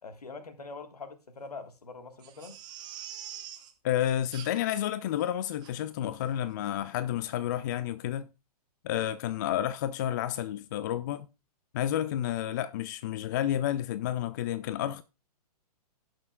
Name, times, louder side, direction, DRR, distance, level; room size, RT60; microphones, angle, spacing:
voice 1, 0.0-2.6, left 4 dB, 70° left, 1.5 m, -44 dB
Crying sobbing, 2.2-3.7 4.3-4.8 5.2-5.3 5.6-5.7 6.2-6.4 6.6-6.7, right 10 dB, 20° right, 1.2 m, -44 dB
voice 2, 3.8-8.3 8.8-11.3 11.7-15.0, left 11 dB, 30° left, 0.3 m, -30 dB
17.0 x 6.2 x 2.2 m
figure-of-eight pair, 115°, 20 cm